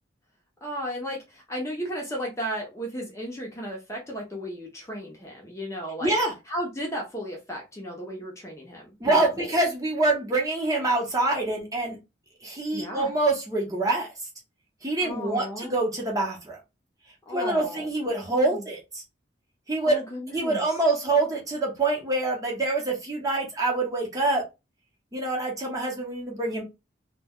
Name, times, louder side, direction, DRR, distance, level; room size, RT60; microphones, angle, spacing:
voice 1, 0.6-6.1 6.5-9.5 12.7-13.1 15.0-15.8 17.3-17.9 18.3-18.7 19.8-20.7, equal, 15° left, -1 dB, 0.6 m, -35 dB
voice 2, 6.0-6.3 9.0-12.0 12.4-14.1 14.8-16.6 17.3-19.0 19.7-20.0 20.3-24.4 25.1-26.6, right 2 dB, 20° right, -2 dB, 0.7 m, -25 dB
2.2 x 2.1 x 3.5 m, 0.25 s
head